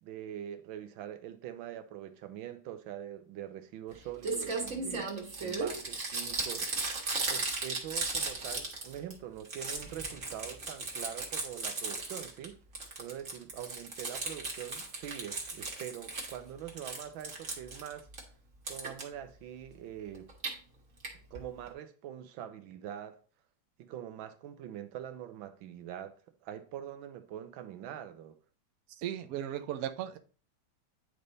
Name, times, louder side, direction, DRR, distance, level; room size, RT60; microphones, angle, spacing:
voice 1, 0.0-5.1 5.4-6.7 7.3-12.6 13.0-18.1 18.7-20.3 21.3-23.2 23.8-26.1 26.4-28.4, right 10 dB, 90° right, 1.5 m, -44 dB
Crumpling crinkling, 3.9-4.0 4.2-9.1 9.4-12.4 12.7-16.4 16.7-18.2 18.7-19.0 20.1-20.5 21.0-21.1 21.3-21.4 21.7-21.8, right 3 dB, 45° right, 1.8 m, -36 dB
voice 2, 29.0-30.2, right 11 dB, 65° right, 0.9 m, -36 dB
10.0 x 3.5 x 3.9 m
omnidirectional pair, 2.1 m